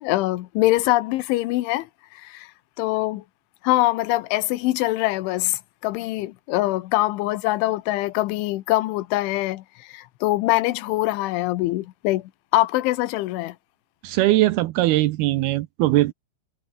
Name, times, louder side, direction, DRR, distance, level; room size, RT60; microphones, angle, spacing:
voice 1, 0.0-2.5 2.8-3.2 3.6-13.6, left 18 dB, 85° left, 3.5 m, -23 dB
voice 2, 14.0-16.1, right 17 dB, 85° right, 2.2 m, -20 dB
omnidirectional pair, 5.4 m